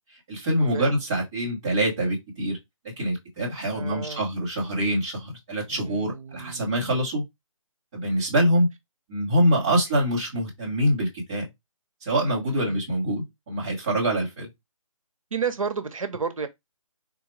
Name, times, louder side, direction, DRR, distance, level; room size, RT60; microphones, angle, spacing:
voice 1, 0.3-2.6 3.0-7.2 7.9-8.7 9.1-11.4 12.0-14.5, right 1 dB, 5° right, 0.6 m, -25 dB
voice 2, 3.7-4.2 5.7-7.0 9.6-9.8 12.4-12.8 15.3-16.5, right 5 dB, 65° right, 0.8 m, -32 dB
4.0 x 2.2 x 2.9 m
hypercardioid pair, 175°, 18 cm